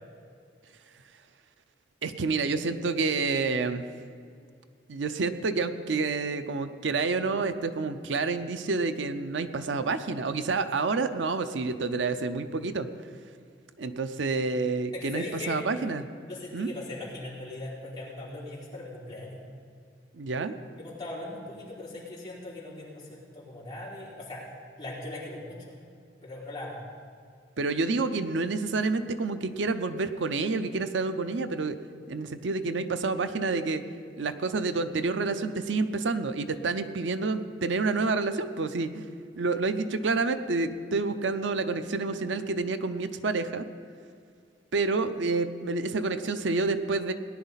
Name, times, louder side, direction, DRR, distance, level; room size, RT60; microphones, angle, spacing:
voice 1, 2.0-3.8 4.9-12.9 13.8-16.1 16.5-16.7 20.1-20.5 27.6-31.8 32.1-33.8 34.2-39.0 39.4-43.7 44.7-47.1, right 3 dB, 85° right, 10 dB, 0.6 m, -28 dB
voice 2, 14.9-15.6 16.3-19.4 20.8-24.4 24.8-25.6 26.2-26.8, left 2 dB, 25° left, -8 dB, 3.7 m, -39 dB
18.0 x 10.5 x 4.1 m, 2.3 s
head